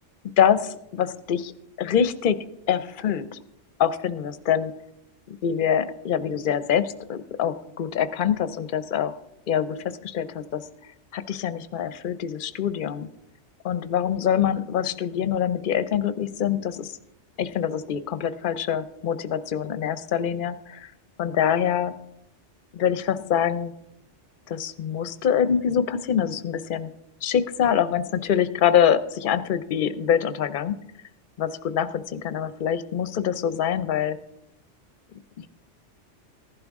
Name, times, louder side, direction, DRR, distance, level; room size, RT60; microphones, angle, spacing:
voice 1, 0.4-1.5 1.8-3.4 3.8-4.8 5.3-9.1 9.5-10.6 11.1-13.1 13.6-17.0 17.4-20.9 21.2-21.9 22.7-23.7 24.5-26.9 27.2-30.7 31.4-34.2 35.4-35.5, left 8 dB, 50° left, 13 dB, 0.8 m, -25 dB
15.5 x 11.5 x 3.6 m, 0.81 s
omnidirectional pair, 1.2 m